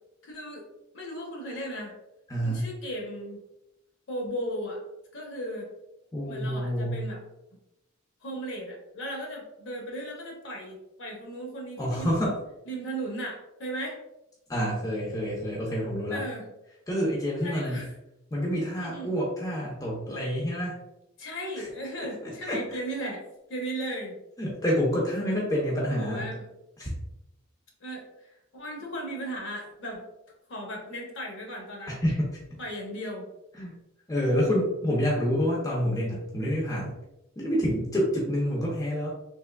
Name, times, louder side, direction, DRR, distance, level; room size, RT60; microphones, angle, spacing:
voice 1, 0.2-0.7 0.9-1.9 2.4-3.4 4.1-4.8 5.1-5.7 6.3-7.2 8.2-12.2 12.7-14.0 16.1-16.5 17.4-17.9 18.8-19.1 21.2-23.2 23.5-24.2 25.9-26.5 27.8-28.1 28.5-30.0 30.5-32.0 32.6-33.3, right 1 dB, 55° left, 0 dB, 0.9 m, -36 dB
voice 2, 2.3-2.7 6.1-7.0 11.8-12.4 14.5-16.2 16.9-17.8 18.3-20.8 21.6-21.7 22.2-23.1 24.4-26.3 26.8-26.9 31.9-32.4 33.5-33.7 34.1-36.9 37.4-39.1, equal, 15° left, -4 dB, 0.6 m, -28 dB
3.5 x 2.9 x 2.2 m, 0.88 s
head